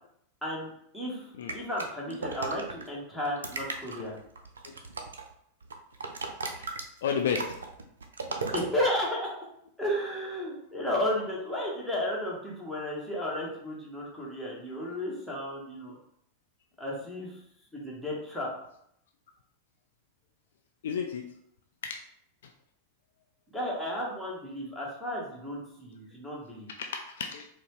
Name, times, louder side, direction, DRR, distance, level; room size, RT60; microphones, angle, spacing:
voice 1, 0.4-4.2 8.5-9.3 9.8-16.0 16.8-17.4 17.7-18.5 23.5-26.7, left 1 dB, ahead, -5 dB, 1.3 m, -33 dB
sound 1, 1.5-2.9 3.2-5.3 5.6-8.7, right 3 dB, 70° right, 0.4 m, -36 dB
voice 2, 7.0-7.5 20.8-21.3 21.8-22.0 26.8-27.5, left 7 dB, 60° left, 4 dB, 0.3 m, -31 dB
4.5 x 2.2 x 3.1 m, 0.72 s
figure-of-eight pair, 90°, 0 cm